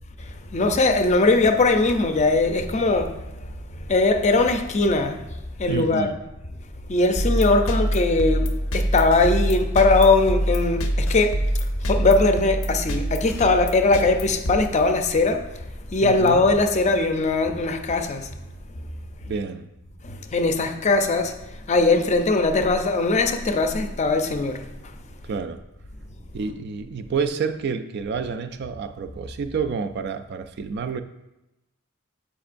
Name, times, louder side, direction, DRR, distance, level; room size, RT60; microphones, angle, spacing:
voice 1, 0.5-3.2 3.9-5.2 5.6-6.1 6.9-8.5 8.7-11.4 11.9-15.4 15.9-18.3 20.0-21.3 21.7-24.6, left 3 dB, 35° left, 0.5 m, -20 dB
voice 2, 5.7-6.2 16.0-16.5 19.2-19.7 25.2-25.7 26.3-31.0, right 5 dB, 55° right, 0.3 m, -29 dB
sound 1, 7.2-15.3, right 1 dB, 85° left, 0.7 m, -25 dB
7.3 x 5.1 x 2.5 m
head